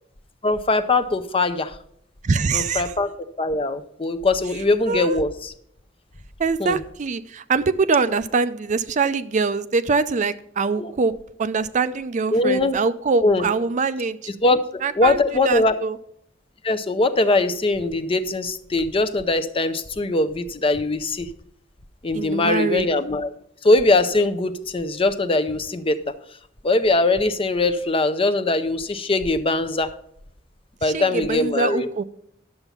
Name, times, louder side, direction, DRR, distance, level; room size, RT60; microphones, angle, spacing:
voice 1, 0.4-1.8 2.5-5.5 6.6-6.8 10.8-10.9 12.3-12.8 13.2-13.4 14.4-15.8 16.6-21.3 22.0-23.3 23.6-26.0 26.6-29.9 30.8-31.9, left 2 dB, 30° left, 10 dB, 0.6 m, -21 dB
voice 2, 2.2-2.9 4.9-5.2 6.4-14.3 14.8-16.0 22.1-22.9 30.8-32.0, right 4 dB, 40° right, 13 dB, 0.4 m, -23 dB
10.5 x 7.0 x 5.6 m, 0.70 s
head